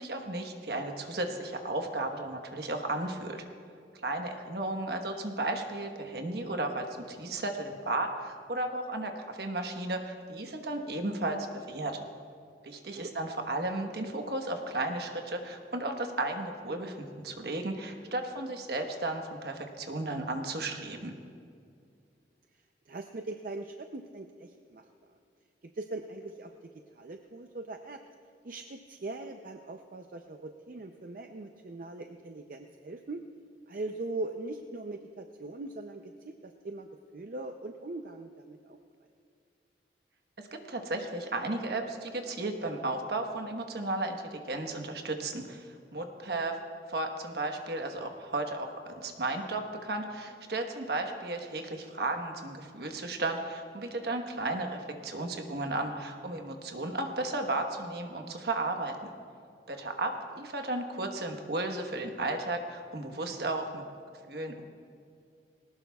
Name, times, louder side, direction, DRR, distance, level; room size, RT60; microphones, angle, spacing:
voice 1, 0.0-3.4 4.0-12.0 12.6-21.1 40.4-45.7 45.9-46.6 46.9-59.1 59.7-63.8 64.3-64.6, right 2 dB, 65° right, 4 dB, 1.2 m, -34 dB
voice 2, 22.9-24.9 25.7-26.5 26.9-28.0 28.4-33.2 33.7-38.8 60.4-60.5, right 2 dB, 50° right, 5 dB, 0.5 m, -41 dB
20.0 x 18.0 x 2.3 m, 2.4 s
head